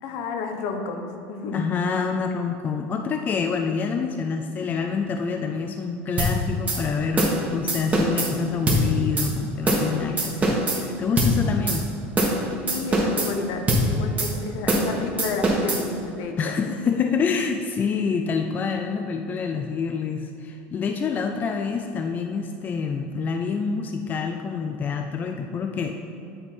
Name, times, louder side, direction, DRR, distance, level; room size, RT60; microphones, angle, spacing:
voice 1, 0.0-1.7 12.7-16.8, left 4 dB, 65° left, 5 dB, 0.8 m, -31 dB
voice 2, 1.5-11.8 16.4-25.9, left 5 dB, 30° left, 4 dB, 0.4 m, -27 dB
sound 1, 6.2-6.3 6.7-6.8 7.2-7.4 7.7-8.3 8.7-8.8 9.2-9.3 9.7-9.9 10.2-10.8 11.2-11.3 11.7-11.8 12.2-12.4 12.7-13.3 13.7-13.8 14.2-14.3 14.7-14.9 15.2-15.8, right 1 dB, 25° right, 1.4 m, -22 dB
9.3 x 3.7 x 4.5 m, 2.7 s
supercardioid pair, 115°, 6 cm